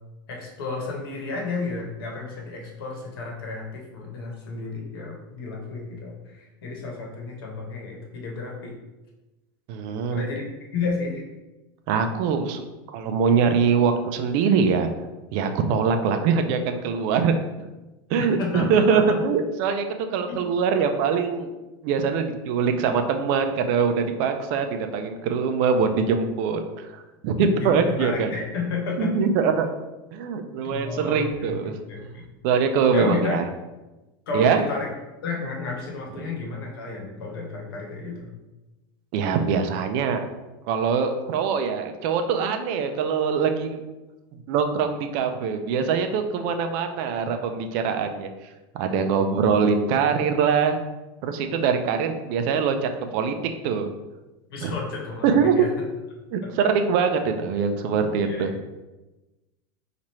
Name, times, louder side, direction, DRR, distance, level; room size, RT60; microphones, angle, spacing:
voice 1, 0.3-8.7 10.1-11.2 18.4-19.2 20.3-20.4 27.3-29.2 30.6-31.6 31.9-32.3 32.9-33.4 34.3-34.9 35.2-38.3 54.5-55.7 58.2-58.5, left 4 dB, 85° left, -1 dB, 1.1 m, -32 dB
voice 2, 9.7-10.2 11.9-14.9 15.3-17.3 18.1-19.8 20.1-21.5 21.8-28.3 29.0-29.7 30.1-31.8 32.4-33.4 34.3-34.6 39.1-40.2 40.7-43.8 44.5-48.3 48.7-50.8 51.2-53.3 53.6-53.9 54.6-54.7 55.2-55.7 56.3-58.5, right 6 dB, 55° right, 7 dB, 0.4 m, -23 dB
3.0 x 2.5 x 4.2 m, 1.1 s
supercardioid pair, 140°, 12 cm